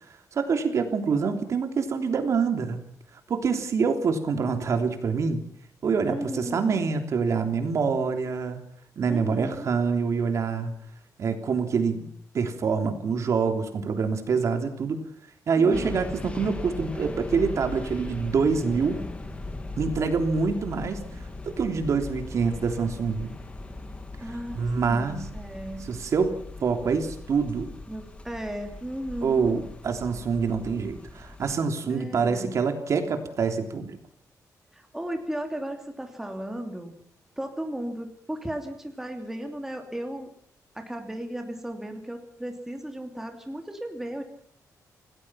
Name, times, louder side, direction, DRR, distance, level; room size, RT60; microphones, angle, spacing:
voice 1, 0.3-2.8 3.3-5.4 5.8-8.6 9.0-10.7 11.2-12.0 12.3-15.0 15.5-19.0 19.8-21.0 21.4-23.3 24.5-25.2 25.9-27.7 29.2-34.0, right 5 dB, 50° right, 6 dB, 3.3 m, -26 dB
voice 2, 6.1-6.8 9.1-9.8 15.6-15.9 24.2-25.9 27.9-29.6 31.9-32.7 34.7-37.0 37.4-40.3 40.7-44.2, right 1 dB, 5° right, 4 dB, 2.8 m, -35 dB
sound 1, 15.7-31.6, left 2 dB, 20° left, 2.2 m, -39 dB
28.0 x 18.0 x 5.8 m, 0.63 s
wide cardioid pair, 175°, 6 cm